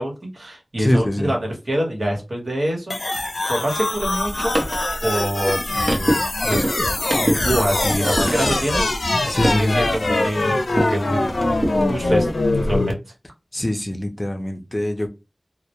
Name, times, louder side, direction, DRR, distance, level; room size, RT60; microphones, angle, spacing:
voice 1, 0.0-3.0 3.5-4.6 5.0-6.7 7.1-8.8 9.5-11.3 11.8-12.3 12.5-13.0, equal, 75° right, 1.0 m, -25 dB
voice 2, 0.8-1.3 9.3-9.8 13.5-15.1, left 1 dB, 30° left, 0.5 m, -23 dB
sound 1, 2.9-12.9, left 2 dB, 90° left, 0.5 m, -23 dB
sound 2, 3.9-11.0 11.3-12.8, right 1 dB, 55° right, 0.6 m, -26 dB
2.1 x 2.1 x 2.8 m
wide cardioid pair, 60°, 0 cm